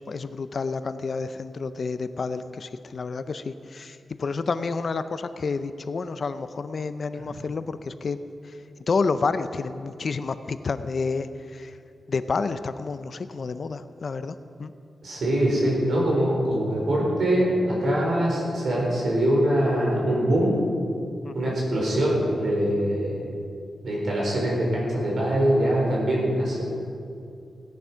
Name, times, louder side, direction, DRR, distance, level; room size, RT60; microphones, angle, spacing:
voice 1, 0.1-8.2 8.9-11.7 12.1-14.7 21.2-21.6, left 4 dB, 45° left, 12 dB, 0.5 m, -29 dB
voice 2, 15.0-20.6 21.3-23.2 23.8-26.6, right 1 dB, 55° right, -3 dB, 4.1 m, -23 dB
17.0 x 10.5 x 5.6 m, 2.5 s
wide cardioid pair, 165°, 0 cm